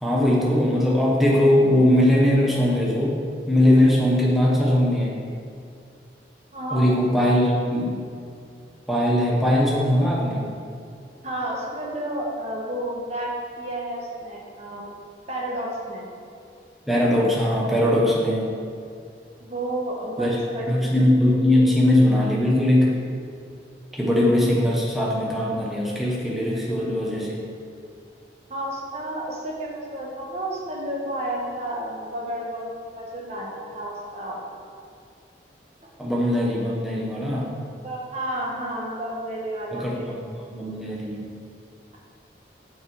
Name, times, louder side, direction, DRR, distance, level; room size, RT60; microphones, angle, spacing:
voice 1, 0.0-3.2 3.5-5.2 6.7-7.9 8.9-10.5 16.9-18.5 20.2-23.0 23.9-27.4 36.0-37.6 39.7-40.2 40.5-41.3, left 1 dB, ahead, -5 dB, 1.2 m, -20 dB
voice 2, 6.5-6.9 11.2-14.9 15.3-16.1 19.4-20.6 28.5-34.4 37.8-40.1 41.9-42.0, right 1 dB, 35° right, -2 dB, 1.3 m, -31 dB
7.5 x 5.9 x 4.8 m, 2.4 s
head